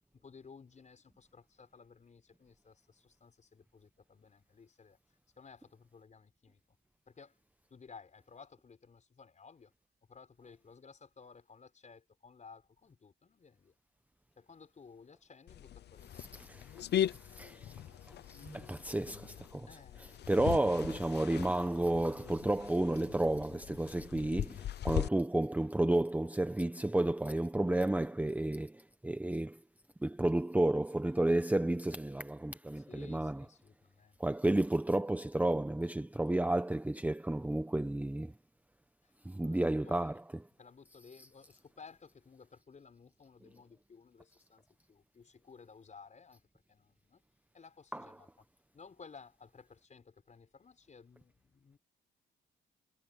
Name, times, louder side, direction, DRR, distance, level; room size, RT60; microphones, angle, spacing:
voice 1, 0.1-5.0 5.4-6.6 7.1-7.4 7.7-9.7 10.1-13.7 14.4-16.3 19.7-20.3 24.8-25.0 32.7-34.3 39.0-39.1 39.4-40.2 40.6-46.4 46.7-47.2 47.5-48.3 48.7-51.8, left 5 dB, 35° left, 5.3 m, -56 dB
sound 1, 15.5-25.1, left 11 dB, 60° left, 0.6 m, -39 dB
voice 2, 16.2-17.8 18.1-19.7 20.3-29.6 30.0-33.4 34.2-38.3 39.2-40.2 47.9-48.1, right 1 dB, 5° right, 1.0 m, -32 dB
cardioid pair, 90°, 20 cm